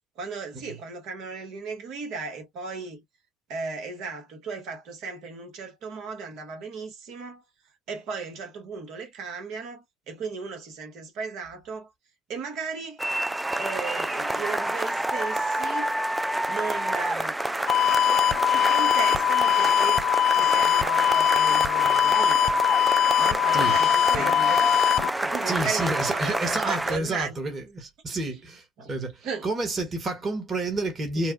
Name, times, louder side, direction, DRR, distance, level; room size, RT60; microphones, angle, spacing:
voice 1, 0.1-3.0 3.5-7.4 7.9-11.9 12.3-13.0 13.6-15.9 16.4-17.6 18.1-20.1 20.3-22.6 23.2-27.4 28.8-28.9 29.2-29.5 31.1-31.2, right 5 dB, 65° right, 1.3 m, -36 dB
sound 1, 13.0-27.0, right 1 dB, 10° right, 0.3 m, -28 dB
sound 2, 17.7-25.1, left 11 dB, 60° left, 0.4 m, -21 dB
voice 2, 25.5-31.3, right 2 dB, 40° right, 1.5 m, -30 dB
3.3 x 2.2 x 2.3 m
hypercardioid pair, 65°, 0 cm